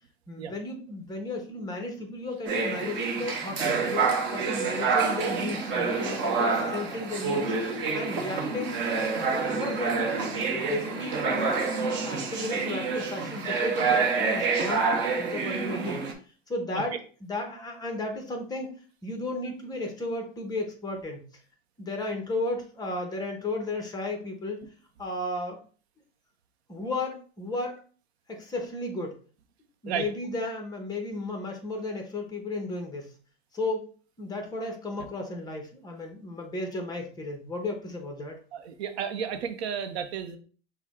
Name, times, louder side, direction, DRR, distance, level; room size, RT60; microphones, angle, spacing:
voice 1, 0.3-7.5 7.9-8.8 9.2-14.9 15.2-16.0 16.5-17.0 17.2-18.7 19.0-21.2 21.8-24.6 25.0-25.6 26.7-27.8 28.3-29.2 29.8-33.1 33.5-33.9 34.2-38.4, left 2 dB, 10° left, 3 dB, 0.9 m, -34 dB
sound 1, 2.4-16.1, right 4 dB, 35° right, 0.9 m, -28 dB
voice 2, 38.5-40.4, right 7 dB, 75° right, 7 dB, 0.8 m, -32 dB
5.9 x 2.2 x 3.5 m, 0.40 s
supercardioid pair, 135°, 32 cm